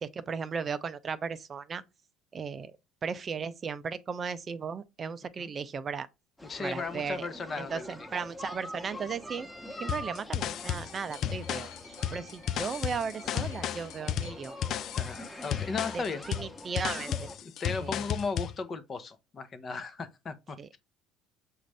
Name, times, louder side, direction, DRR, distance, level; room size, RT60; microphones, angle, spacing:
voice 1, 0.0-1.8 2.3-2.8 3.0-6.1 6.6-7.3 7.6-9.5 9.8-14.6 15.9-17.3 17.8-18.0 20.6-20.8, right 6 dB, 40° right, 0.4 m, -36 dB
voice 2, 6.4-7.9 14.9-16.2 17.4-20.8, left 4 dB, 40° left, 0.8 m, -36 dB
sound 1, 6.4-17.4, equal, 10° left, 1.0 m, -45 dB
sound 2, 9.9-18.6, left 10 dB, 60° left, 0.3 m, -33 dB
sound 3, 10.8-16.2 17.1-17.2, left 4 dB, 90° left, 1.3 m, -55 dB
6.2 x 2.5 x 3.3 m
supercardioid pair, 80°, 0 cm